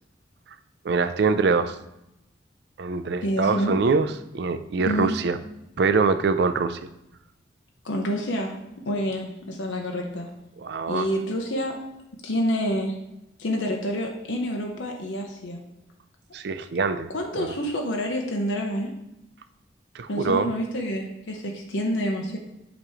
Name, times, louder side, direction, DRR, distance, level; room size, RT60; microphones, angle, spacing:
voice 1, 0.8-1.8 2.8-5.4 5.8-6.8 10.6-11.1 16.3-17.5 19.9-20.5, right 4 dB, 60° right, 11 dB, 0.4 m, -24 dB
voice 2, 3.2-3.7 4.8-5.1 7.8-8.6 8.9-10.3 10.9-11.8 12.2-12.9 13.4-15.6 17.1-18.9 20.1-22.4, equal, 90° left, 2 dB, 0.9 m, -28 dB
7.3 x 3.1 x 4.9 m, 0.87 s
head